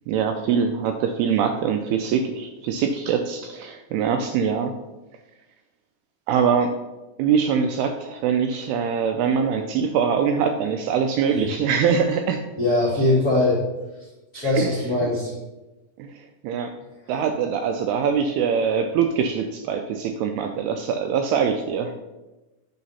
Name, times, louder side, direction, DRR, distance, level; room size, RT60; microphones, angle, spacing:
voice 1, 0.1-4.8 6.3-6.8 7.2-12.4 14.4-14.7 15.0-15.1 16.0-16.7 17.1-21.9, right 6 dB, 85° right, 6 dB, 2.3 m, -23 dB
voice 2, 12.6-13.6 14.3-15.3, left 2 dB, 60° left, -7 dB, 0.9 m, -21 dB
8.6 x 4.2 x 5.5 m, 1.1 s
omnidirectional pair, 5.0 m